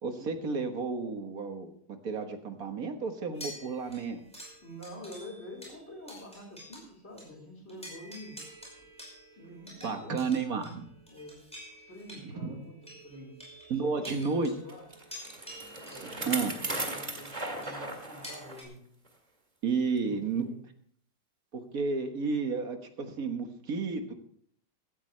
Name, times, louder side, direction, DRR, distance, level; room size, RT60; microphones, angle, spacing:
voice 1, 0.0-1.7 2.0-4.2 9.8-10.9 12.2-12.6 13.7-14.5 16.2-16.5 19.6-20.5 21.5-24.1, right 4 dB, 55° right, 6 dB, 1.8 m, -32 dB
sound 1, 3.3-6.9 7.2-7.3 7.7-18.6, equal, 5° left, 5.2 m, -49 dB
voice 2, 4.6-8.4 9.4-10.2 11.1-11.4 11.7-12.8 13.0-13.3 13.8-14.0 14.3-14.9 15.9-18.8 20.0-20.6, left 1 dB, 35° left, -1 dB, 4.4 m, -47 dB
Bicycle, 14.7-18.6 19.1-19.2 20.0-20.1, right 2 dB, 25° right, 1.9 m, -37 dB
16.0 x 13.5 x 3.3 m, 0.62 s
omnidirectional pair, 1.9 m